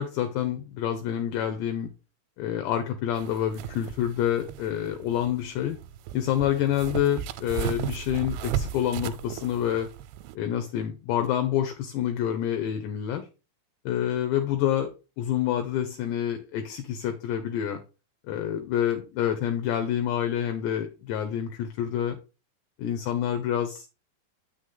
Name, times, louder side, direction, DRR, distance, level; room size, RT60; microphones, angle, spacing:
voice 1, 0.0-1.9 2.4-5.8 6.1-9.9 10.4-13.3 13.9-14.9 15.2-17.8 18.3-22.2 22.8-23.9, left 10 dB, 80° left, 6 dB, 2.7 m, -27 dB
sound 1, 3.2-10.3, right 10 dB, 90° right, 3.0 m, -35 dB
8.0 x 6.5 x 3.8 m, 0.30 s
omnidirectional pair, 5.4 m